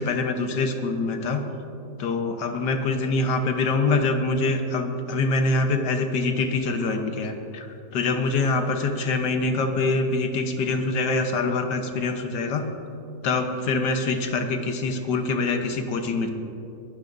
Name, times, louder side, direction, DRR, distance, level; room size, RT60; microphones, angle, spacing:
voice 1, 0.0-1.5 2.0-12.7 13.2-16.3, left 3 dB, 85° left, 5 dB, 1.6 m, -25 dB
22.5 x 12.5 x 2.6 m, 2.8 s
omnidirectional pair, 1.8 m